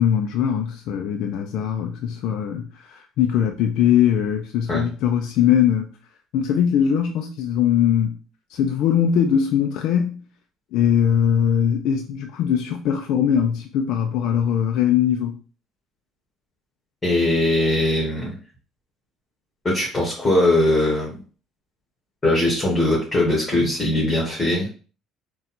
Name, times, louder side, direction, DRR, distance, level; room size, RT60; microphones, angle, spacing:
voice 1, 0.0-5.9 6.3-8.1 8.5-10.2 10.7-15.4, left 9 dB, 70° left, 0.4 m, -21 dB
voice 2, 17.0-18.4 19.6-21.2 22.2-24.7, left 1 dB, 20° left, 1.6 m, -20 dB
3.8 x 2.3 x 4.3 m
cardioid pair, 120°, 0 cm